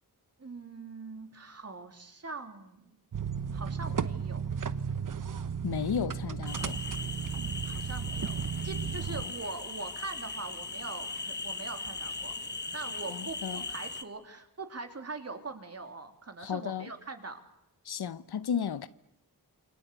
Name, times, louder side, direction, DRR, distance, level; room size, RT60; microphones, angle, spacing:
voice 1, 0.4-3.0 3.5-4.4 7.3-8.4 8.6-12.3 12.7-17.4, right 3 dB, 40° right, 3.1 m, -42 dB
sound 1, 3.1-9.2, right 7 dB, 55° right, 1.1 m, -34 dB
voice 2, 5.6-6.8 9.1-9.3 13.1-13.6 16.4-16.9 17.8-18.9, left 8 dB, 90° left, 1.0 m, -34 dB
sound 2, 6.5-14.0, left 3 dB, 30° left, 1.4 m, -39 dB
28.5 x 24.0 x 8.2 m
wide cardioid pair, 130°, 37 cm